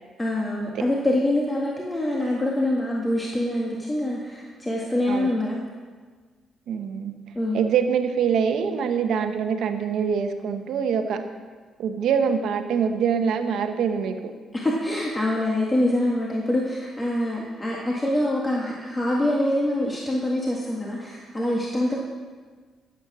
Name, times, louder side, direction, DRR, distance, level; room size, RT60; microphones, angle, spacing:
voice 1, 0.2-5.6 7.4-7.6 14.5-22.0, left 1 dB, 15° left, -3 dB, 1.8 m, -25 dB
voice 2, 6.7-11.2 11.8-14.3, right 7 dB, 75° right, 7 dB, 1.1 m, -24 dB
13.0 x 8.4 x 6.1 m, 1.5 s
cardioid pair, 90°, 0 cm